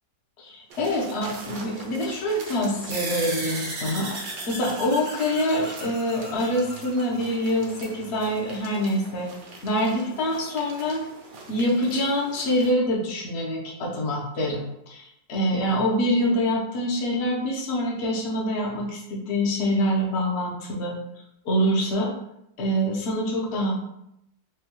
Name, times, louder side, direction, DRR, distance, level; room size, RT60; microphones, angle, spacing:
voice 1, 0.4-9.3 9.6-11.0 11.5-21.0 21.4-22.1 22.6-23.7, equal, 55° left, -1 dB, 0.8 m, -25 dB
sound 1, 0.7-12.7, right 3 dB, 60° right, 1.0 m, -43 dB
sound 2, 2.9-7.8, right 2 dB, 80° right, 1.9 m, -35 dB
4.7 x 2.3 x 3.0 m, 0.80 s
omnidirectional pair, 2.0 m